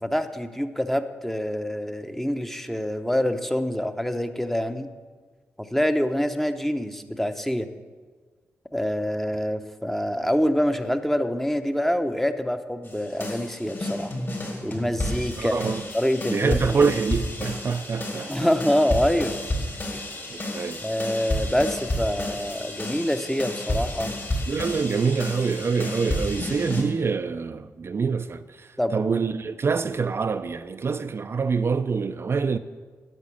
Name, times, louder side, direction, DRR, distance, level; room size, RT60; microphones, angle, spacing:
voice 1, 0.0-4.9 5.6-7.7 8.7-14.1 14.6-15.5 15.9-16.8 18.3-19.4 19.9-20.1 20.8-24.1 28.8-29.0, equal, 5° left, 0.8 m, -26 dB
sound 1, 12.8-26.8, left 1 dB, 45° left, 4.1 m, -31 dB
voice 2, 15.4-15.8 16.3-18.4 20.3-20.8 24.5-32.6, right 5 dB, 50° right, 0.5 m, -26 dB
10.5 x 6.6 x 8.4 m
cardioid pair, 65°, 5 cm